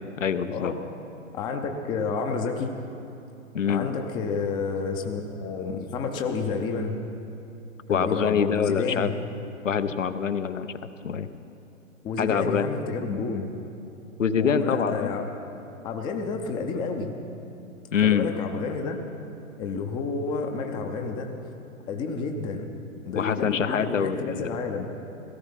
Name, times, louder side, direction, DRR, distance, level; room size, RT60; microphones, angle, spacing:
voice 1, 0.2-0.7 3.5-3.9 7.9-9.1 9.6-10.7 11.0-11.3 12.2-12.7 14.2-15.1 17.9-18.3 23.1-24.5, left 7 dB, 70° left, 11 dB, 0.9 m, -25 dB
voice 2, 1.3-2.7 3.7-7.0 7.9-9.1 12.0-13.5 14.3-15.3 15.8-17.1 18.0-19.0 19.6-21.3 21.9-22.7 23.0-24.9, left 4 dB, 10° left, 5 dB, 0.7 m, -30 dB
17.0 x 14.5 x 5.6 m, 2.7 s
figure-of-eight pair, 120°, 40 cm